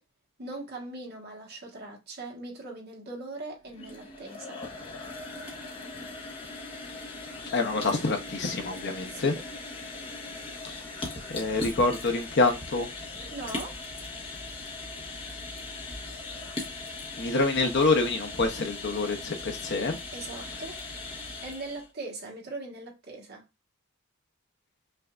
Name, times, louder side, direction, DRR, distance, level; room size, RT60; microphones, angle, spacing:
voice 1, 0.4-4.6 9.1-9.4 13.3-13.8 20.1-20.8 21.4-23.4, right 2 dB, 50° right, 1.6 m, -40 dB
sound 1, 3.6-21.9, left 3 dB, 25° left, 1.1 m, -39 dB
voice 2, 7.5-9.3 10.6-10.8 11.3-12.9 17.2-20.0, left 3 dB, 55° left, 0.8 m, -26 dB
5.6 x 2.7 x 2.4 m
head